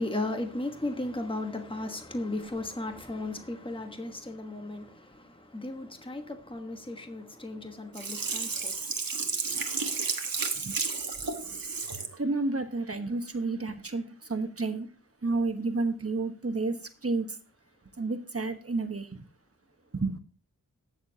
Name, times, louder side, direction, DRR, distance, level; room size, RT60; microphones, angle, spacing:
voice 1, 0.0-8.8 9.2-9.3, left 2 dB, 15° left, 1.3 m, -35 dB
Sink (filling or washing), 7.9-12.1 12.6-12.7, right 4 dB, 85° right, 1.3 m, -32 dB
voice 2, 12.2-14.9 15.2-16.8 17.0-17.3 18.0-19.2 19.9-20.2, right 3 dB, 45° right, 1.2 m, -30 dB
19.0 x 6.7 x 2.8 m
wide cardioid pair, 65°, 34 cm